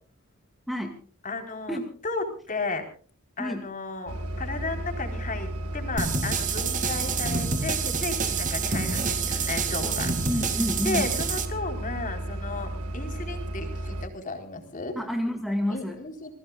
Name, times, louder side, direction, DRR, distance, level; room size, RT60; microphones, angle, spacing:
voice 1, 1.2-2.8 3.4-10.1 10.8-15.0 15.7-16.3, left 3 dB, 35° left, 4 dB, 4.3 m, -34 dB
sound 1, 4.1-14.1, right 1 dB, 90° right, 1.7 m, -33 dB
sound 2, 6.0-11.5, right 5 dB, 35° right, 2.5 m, -28 dB
voice 2, 10.3-11.1 15.0-16.0, equal, ahead, 4 dB, 2.1 m, -29 dB
28.5 x 20.0 x 2.4 m, 0.42 s
head